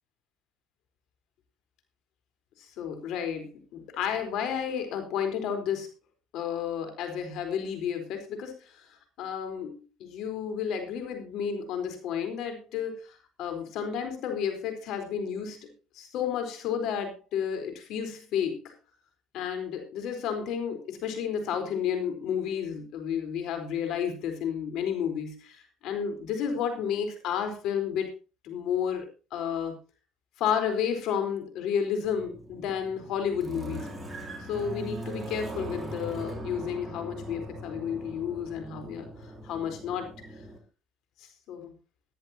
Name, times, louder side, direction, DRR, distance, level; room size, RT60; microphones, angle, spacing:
voice 1, 2.6-5.9 6.3-15.7 15.9-18.7 19.3-28.1 28.4-29.8 30.4-33.9 34.4-40.1 41.2-41.7, left 8 dB, 70° left, 7 dB, 4.3 m, -32 dB
sound 1, 32.0-40.6, right 1 dB, 10° right, 4.0 m, -40 dB
20.0 x 10.5 x 2.9 m, 0.30 s
cardioid pair, 100°, 0 cm